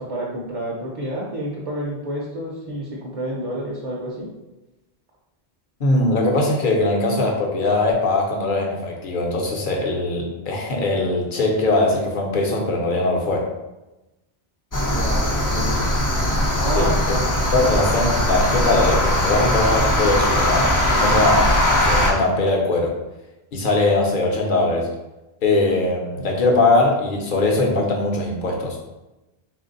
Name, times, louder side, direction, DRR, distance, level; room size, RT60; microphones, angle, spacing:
voice 1, 0.0-4.3 14.8-15.8 16.6-17.7, right 1 dB, 40° right, -4 dB, 0.6 m, -29 dB
voice 2, 5.8-13.5 16.7-16.9 17.5-22.9 23.5-24.9 25.4-28.8, left 2 dB, 55° left, 0 dB, 0.9 m, -21 dB
sound 1, 14.7-22.1, left 1 dB, 25° left, 0.4 m, -20 dB
3.4 x 2.5 x 3.9 m, 1.0 s
omnidirectional pair, 1.1 m